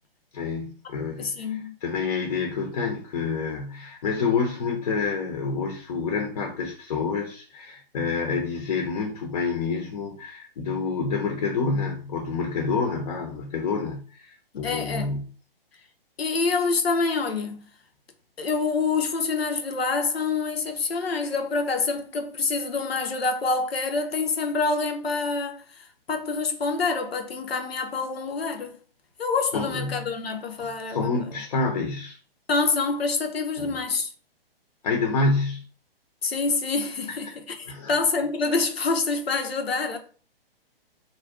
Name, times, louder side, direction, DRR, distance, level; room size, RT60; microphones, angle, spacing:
voice 1, 0.3-1.3 1.8-15.3 29.5-30.0 30.9-32.2 33.6-33.8 34.8-35.6 37.7-37.9, left 4 dB, 40° left, 0.7 m, -28 dB
voice 2, 1.2-1.7 14.5-15.2 16.2-17.7 18.4-25.6 26.1-28.8 29.2-31.3 32.5-34.1 36.2-40.0, left 4 dB, 80° left, 0.7 m, -26 dB
2.5 x 2.2 x 3.5 m
figure-of-eight pair, 130°, 30 cm